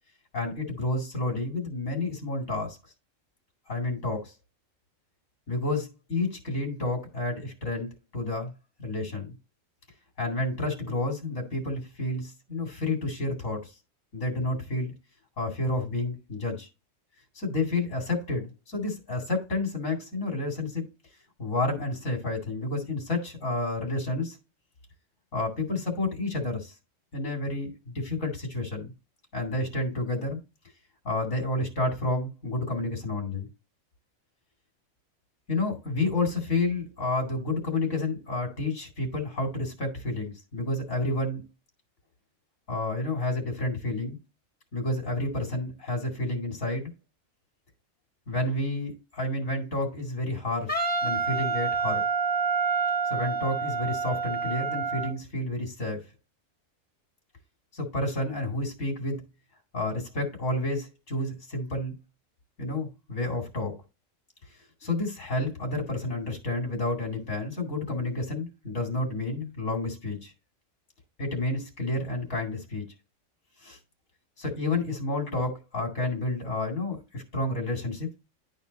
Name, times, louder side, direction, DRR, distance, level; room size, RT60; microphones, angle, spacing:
voice 1, 0.3-2.8 3.7-4.3 5.5-8.5 8.8-9.3 10.2-13.7 14.1-14.9 15.4-16.7 17.4-20.9 21.4-24.4 25.3-26.7 27.1-28.9 29.3-30.4 31.0-33.5 35.5-41.4 42.7-44.2 44.7-46.9 48.3-52.0 53.1-56.0 57.7-59.2 59.7-61.9 62.6-63.7 64.8-70.3 71.2-72.8 73.6-73.8 74.4-78.1, left 2 dB, 80° left, 2.7 m, -30 dB
Wind instrument woodwind instrument, 50.7-55.1, right 5 dB, 10° left, 0.8 m, -28 dB
10.5 x 4.3 x 4.0 m
omnidirectional pair, 1.3 m